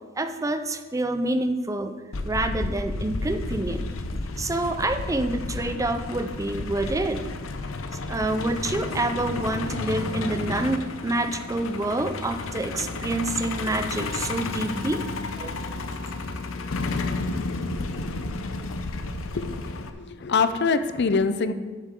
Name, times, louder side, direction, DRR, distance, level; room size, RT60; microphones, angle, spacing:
voice 1, 0.2-3.9 4.4-7.2 8.1-15.0 15.4-15.5, right 2 dB, 15° right, 8 dB, 0.5 m, -27 dB
Truck, 2.1-19.9, left 3 dB, 90° left, 0.7 m, -32 dB
voice 2, 19.3-21.5, left 4 dB, 55° left, 11 dB, 0.6 m, -24 dB
11.5 x 8.2 x 3.7 m, 1.4 s
head